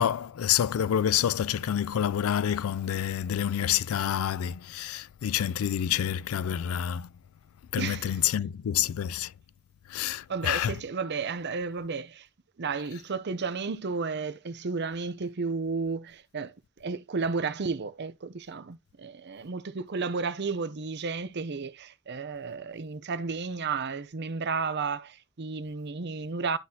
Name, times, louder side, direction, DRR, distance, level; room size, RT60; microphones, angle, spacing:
voice 1, 0.0-7.1 7.7-9.3 9.9-10.7, left 9 dB, 85° left, 0.4 m, -28 dB
voice 2, 7.8-8.2 10.3-12.3 12.6-26.6, right 4 dB, 55° right, 0.6 m, -33 dB
11.5 x 4.0 x 2.8 m
head